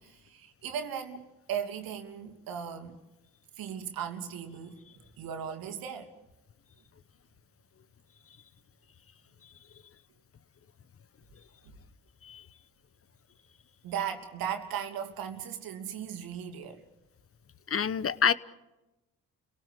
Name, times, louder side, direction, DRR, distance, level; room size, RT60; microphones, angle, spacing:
voice 1, 0.0-3.0 3.6-4.8 5.2-6.1 13.8-16.8, right 8 dB, 75° right, 2.8 m, -37 dB
voice 2, 17.7-18.3, left 7 dB, 40° left, 1.2 m, -27 dB
29.5 x 18.0 x 8.4 m
supercardioid pair, 60°, 35 cm